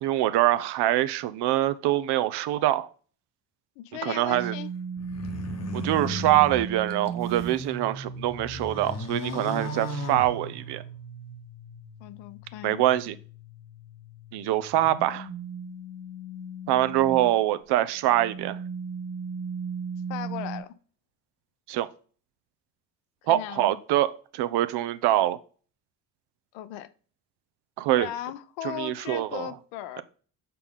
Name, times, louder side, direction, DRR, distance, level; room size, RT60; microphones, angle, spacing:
voice 1, 0.0-2.9 4.0-4.5 5.7-10.8 12.6-13.2 14.3-15.3 16.7-18.6 21.7-21.9 23.3-25.4 27.8-28.1 28.8-29.5, right 14 dB, 55° right, 0.6 m, -24 dB
voice 2, 3.8-4.7 12.0-12.8 20.1-20.7 23.2-23.8 26.5-26.9 27.9-30.0, left 12 dB, 60° left, 0.7 m, -37 dB
sound 1, 4.3-17.4 17.9-20.6, right 5 dB, 85° right, 1.0 m, -38 dB
sound 2, 5.0-7.6 8.1-10.9, left 2 dB, 30° left, 1.0 m, -36 dB
6.7 x 4.1 x 3.6 m
hypercardioid pair, 50°, 50 cm